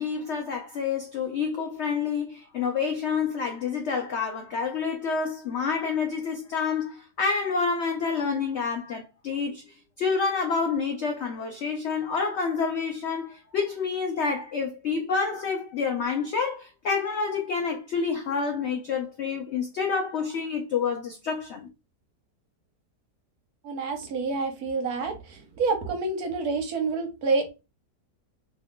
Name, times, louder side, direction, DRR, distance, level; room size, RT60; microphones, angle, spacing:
voice 1, 0.0-9.6 10.0-21.7, left 5 dB, 80° left, 0.6 m, -28 dB
voice 2, 23.6-27.5, right 4 dB, 65° right, 1.2 m, -28 dB
3.0 x 2.2 x 3.7 m
omnidirectional pair, 1.8 m